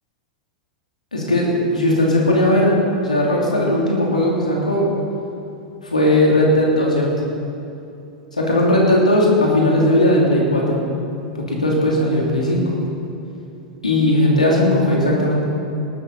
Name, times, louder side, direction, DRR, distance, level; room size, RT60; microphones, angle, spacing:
voice 1, 1.1-2.7 3.0-4.9 5.8-7.1 8.4-10.8 11.3-12.6 13.8-15.4, left 1 dB, 85° left, -3 dB, 3.0 m, -17 dB
18.5 x 12.0 x 4.1 m, 2.7 s
figure-of-eight pair, 90°, 4 cm